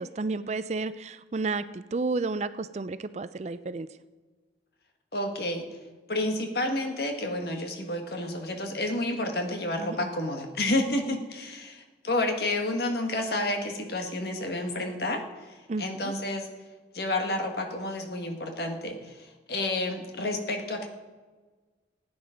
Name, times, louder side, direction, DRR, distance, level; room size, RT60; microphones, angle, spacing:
voice 1, 0.0-3.9 9.8-10.1 15.7-16.1, right 3 dB, 40° right, 14 dB, 0.4 m, -32 dB
voice 2, 5.1-5.7 6.1-16.5 16.9-20.9, left 1 dB, 60° left, 4 dB, 1.6 m, -30 dB
15.5 x 9.5 x 5.1 m, 1.3 s
head